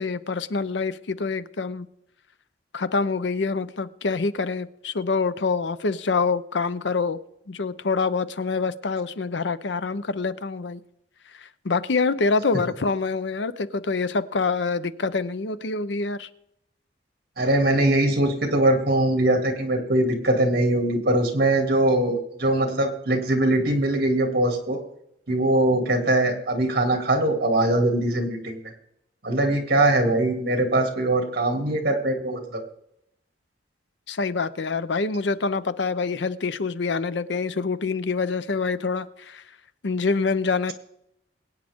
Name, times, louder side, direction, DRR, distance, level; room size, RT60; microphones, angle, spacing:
voice 1, 0.0-1.9 2.7-7.2 7.5-10.8 11.4-16.3 34.1-39.4 39.8-40.7, left 4 dB, 75° left, 0.7 m, -26 dB
voice 2, 17.4-24.8 25.3-28.6 29.2-32.6, right 1 dB, 55° right, 2.6 m, -22 dB
23.0 x 9.0 x 3.6 m
head